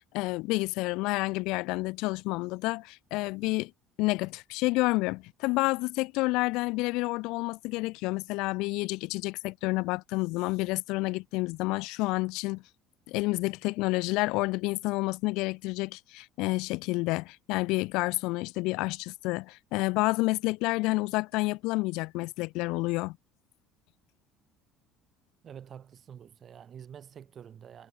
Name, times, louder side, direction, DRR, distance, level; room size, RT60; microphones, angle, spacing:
voice 1, 0.0-3.7 4.0-12.6 13.1-23.2, left 23 dB, 75° left, 0.3 m, -29 dB
voice 2, 25.4-27.9, right 8 dB, 35° right, 4.1 m, -47 dB
cardioid pair, 145°, 0 cm